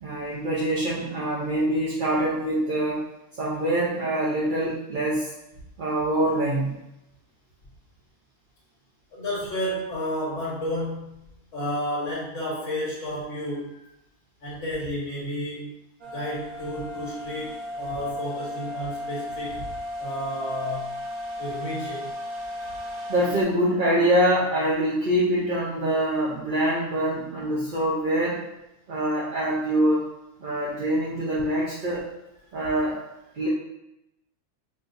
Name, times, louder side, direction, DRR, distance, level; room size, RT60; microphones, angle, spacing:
voice 1, 0.0-3.0 3.4-5.3 5.8-6.8 23.1-28.4 28.9-30.0 30.4-32.0 32.5-33.0 33.3-33.5, right 1 dB, 45° right, -7 dB, 0.7 m, -24 dB
voice 2, 9.1-11.2 11.5-13.8 14.4-15.7 16.1-19.6 20.0-20.9 21.4-22.1, equal, 65° left, -7 dB, 1.5 m, -31 dB
sound 1, 16.0-23.4, left 1 dB, 90° right, 0.3 m, -35 dB
5.2 x 2.6 x 2.6 m, 0.89 s
omnidirectional pair, 1.5 m